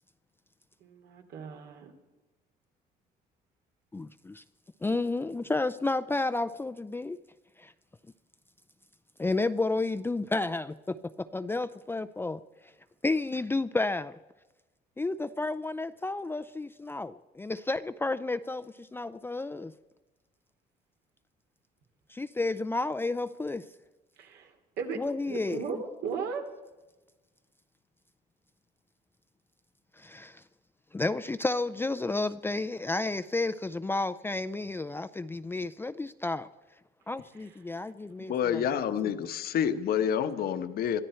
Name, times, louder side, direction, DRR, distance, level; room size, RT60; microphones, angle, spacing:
voice 1, 0.8-1.9 24.2-24.5 24.8-25.0 25.3-26.4, right 5 dB, 75° right, 3 dB, 2.9 m, -36 dB
voice 2, 3.9-4.4 4.8-7.2 7.6-7.7 9.2-12.4 13.0-14.2 15.0-19.7 22.1-23.6 24.9-25.7 30.0-30.4 30.9-36.5 37.1-38.6, left 2 dB, 15° left, 11 dB, 0.5 m, -31 dB
voice 3, 38.3-41.0, left 8 dB, 65° left, 10 dB, 1.2 m, -28 dB
23.0 x 13.5 x 4.4 m, 1.1 s
cardioid pair, 110°, 17 cm